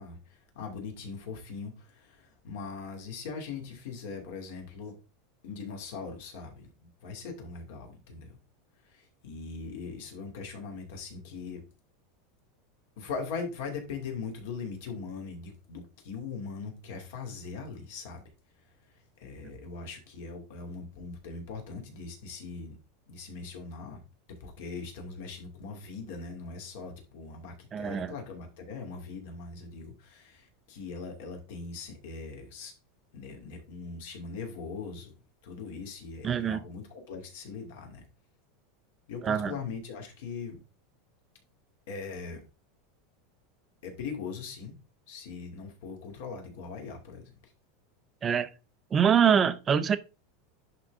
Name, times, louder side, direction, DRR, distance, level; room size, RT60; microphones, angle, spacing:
voice 1, 0.0-4.9 5.4-6.6 7.0-8.4 8.8-11.6 13.0-18.2 18.9-22.8 23.1-24.0 24.4-32.7 33.1-35.2 35.4-38.0 39.1-40.6 41.9-42.4 43.8-44.7 45.1-47.5, left 5 dB, 60° left, 2.6 m, -40 dB
voice 2, 27.7-28.1 36.2-36.6 39.2-39.5 48.2-48.5 48.9-50.0, right 8 dB, 15° right, 0.5 m, -24 dB
11.0 x 3.8 x 3.6 m
supercardioid pair, 175°, 0 cm